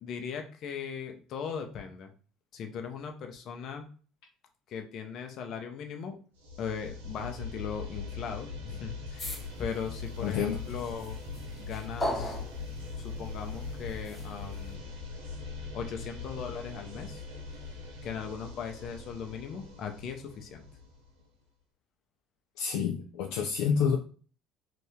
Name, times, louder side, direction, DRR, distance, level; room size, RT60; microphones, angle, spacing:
voice 1, 0.0-2.1 2.5-3.9 4.7-6.1 6.6-9.3 9.6-11.2 11.6-12.4 13.0-14.8 15.7-17.2 18.0-20.6, left 6 dB, 55° left, 4 dB, 0.7 m, -38 dB
sound 1, 6.4-21.2, left 4 dB, 90° right, 0.7 m, -41 dB
sound 2, 9.2-14.8, left 1 dB, 20° left, 1.1 m, -40 dB
voice 2, 10.2-10.6 22.6-24.0, left 6 dB, 75° left, 3 dB, 0.4 m, -28 dB
2.8 x 2.6 x 3.5 m, 0.40 s
hypercardioid pair, 75°, 0 cm